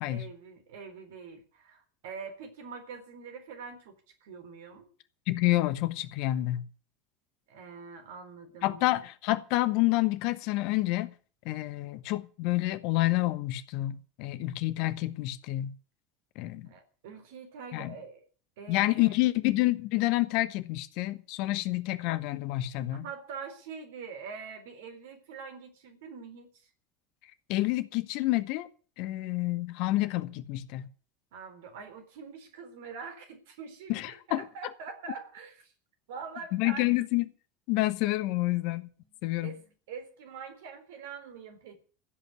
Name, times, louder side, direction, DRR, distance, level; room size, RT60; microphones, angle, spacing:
voice 1, 0.1-3.9 4.2-4.9 7.5-9.0 16.6-18.2 18.6-19.2 23.0-26.7 31.3-35.7 36.1-37.0 39.4-41.8, right 5 dB, 65° right, 4.0 m, -44 dB
voice 2, 5.3-6.7 8.6-11.1 11.4-15.7 16.3-16.7 17.7-17.9 18.7-23.0 27.5-28.7 29.0-30.9 33.9-34.4 36.5-37.2 37.7-38.9 39.2-39.6, left 18 dB, 55° left, 1.2 m, -28 dB
15.5 x 8.1 x 8.1 m
figure-of-eight pair, 70°, 0 cm